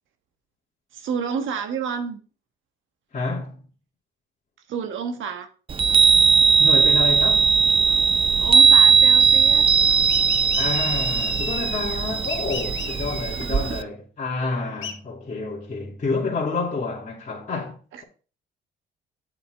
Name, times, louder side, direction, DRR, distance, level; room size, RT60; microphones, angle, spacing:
voice 1, 0.9-2.2 4.7-5.5 8.4-9.7 13.3-13.8 17.9-18.0, right 6 dB, 75° right, 1.3 m, -30 dB
voice 2, 3.1-3.7 6.6-7.5 10.5-18.0, left 4 dB, 40° left, 2.4 m, -29 dB
Chime, 5.7-13.8, right 5 dB, 25° right, 0.4 m, -18 dB
sound 1, 10.1-12.0 12.3-13.5 14.8-14.9, left 7 dB, 70° left, 1.5 m, -35 dB
8.3 x 7.2 x 3.4 m
cardioid pair, 90°, 20 cm